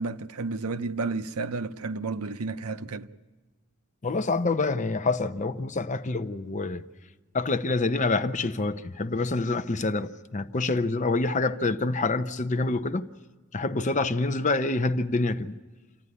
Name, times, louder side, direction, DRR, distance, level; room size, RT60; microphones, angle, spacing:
voice 1, 0.0-3.1, right 3 dB, 90° right, 0.7 m, -31 dB
voice 2, 4.0-6.8 7.3-13.0 13.5-15.5, left 3 dB, 35° left, 0.6 m, -26 dB
27.5 x 14.0 x 9.7 m
head